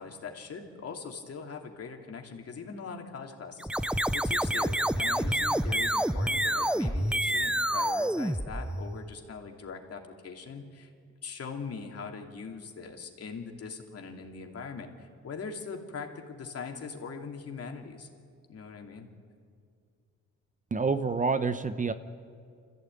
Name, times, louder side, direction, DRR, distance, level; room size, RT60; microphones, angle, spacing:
voice 1, 0.0-10.9 11.2-18.1 18.5-19.1, left 5 dB, 50° left, 3 dB, 2.8 m, -41 dB
sound 1, 3.6-9.1, right 1 dB, 5° right, 0.6 m, -28 dB
voice 2, 20.7-21.9, right 4 dB, 25° right, 11 dB, 0.9 m, -27 dB
25.5 x 15.0 x 9.0 m, 2.3 s
cardioid pair, 90°, 30 cm